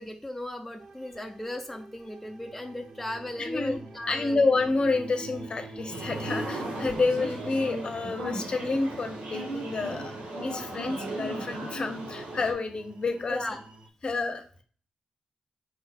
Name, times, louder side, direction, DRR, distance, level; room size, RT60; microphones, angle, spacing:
voice 1, 0.0-4.4 13.3-13.6, left 1 dB, 5° left, 3 dB, 0.5 m, -37 dB
sound 1, 0.8-13.9, right 2 dB, 45° right, 0.6 m, -46 dB
voice 2, 3.4-3.8 4.1-10.1 10.4-13.4 14.0-14.4, left 3 dB, 45° left, 6 dB, 0.7 m, -29 dB
sound 2, 5.9-12.5, right 1 dB, 90° right, 1.1 m, -36 dB
4.7 x 2.2 x 4.1 m, 0.43 s
wide cardioid pair, 100°, 2 cm